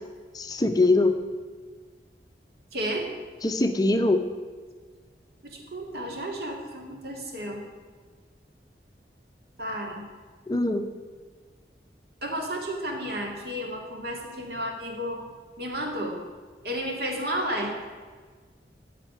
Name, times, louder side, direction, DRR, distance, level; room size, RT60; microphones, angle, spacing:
voice 1, 0.3-1.2 3.4-4.2 10.5-10.9, left 2 dB, 20° left, 7 dB, 0.6 m, -22 dB
voice 2, 2.7-3.1 5.4-7.6 9.6-10.1 12.2-15.2 15.6-16.2 16.6-17.9, equal, 60° right, 1 dB, 2.4 m, -32 dB
14.5 x 5.1 x 9.2 m, 1.5 s
head